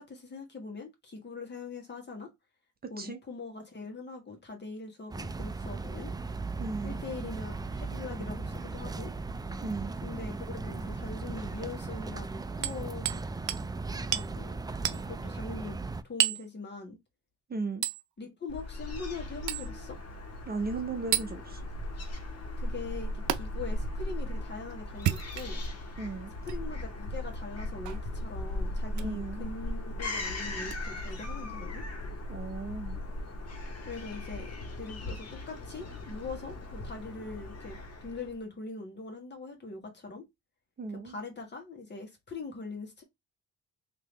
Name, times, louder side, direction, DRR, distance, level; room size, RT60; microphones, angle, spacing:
voice 1, 0.0-2.3 2.9-6.1 6.8-9.1 10.0-13.2 14.0-14.6 14.9-15.8 16.0-17.0 18.2-20.0 22.6-25.6 26.4-31.8 33.9-40.2 41.0-43.0, left 4 dB, 35° left, 1.6 m, -42 dB
sound 1, 5.1-16.0, right 3 dB, 15° right, 0.4 m, -37 dB
voice 2, 6.6-7.0 9.6-10.0 17.5-17.9 20.5-21.6 26.0-26.3 29.0-29.5 32.3-33.0 40.8-41.2, right 3 dB, 30° right, 0.7 m, -36 dB
Hammer, 12.6-13.2 13.5-13.7 14.1-14.3 14.8-15.0 16.2-16.5 17.8-18.0 19.5-19.7 21.1-21.3 23.3-23.4 24.9-25.7 26.4-26.6 27.8-28.0 28.9-29.1 30.7-30.8, right 12 dB, 75° right, 0.6 m, -30 dB
Fowl / Gull seagull, 18.5-38.4, left 1 dB, 55° left, 1.5 m, -38 dB
3.5 x 2.9 x 3.3 m
cardioid pair, 90°, 30 cm